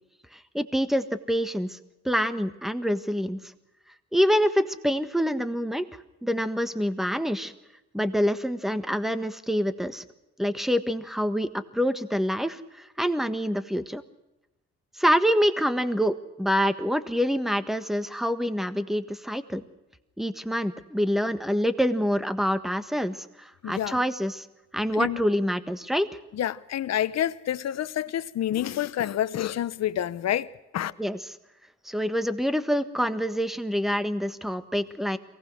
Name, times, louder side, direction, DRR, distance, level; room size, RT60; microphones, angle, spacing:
voice 1, 0.3-1.8 2.0-3.4 4.1-5.9 6.2-7.5 7.9-10.0 10.4-14.0 14.9-19.6 20.2-24.5 24.7-26.1 31.0-31.3 31.8-35.2, equal, ahead, 1.5 m, -26 dB
voice 2, 23.6-23.9 25.0-25.2 26.3-30.5 30.7-30.9, left 11 dB, 60° left, 0.9 m, -28 dB
23.0 x 18.5 x 6.3 m
cardioid pair, 90°, 30 cm